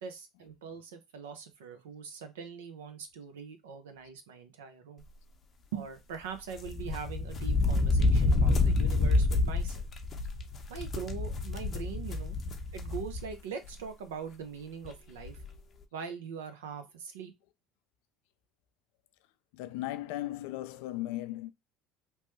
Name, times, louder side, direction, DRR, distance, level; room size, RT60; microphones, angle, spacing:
voice 1, 0.0-5.0 5.7-9.9 10.7-12.4 12.7-15.4 15.9-17.3, right 6 dB, 85° right, 0.5 m, -42 dB
sound 1, 6.6-13.3 13.7-13.8 14.8-14.9 15.2-15.5, left 3 dB, 40° left, 0.6 m, -28 dB
voice 2, 19.5-21.5, left 15 dB, 75° left, 0.3 m, -36 dB
2.9 x 2.2 x 3.1 m
hypercardioid pair, 80°, 0 cm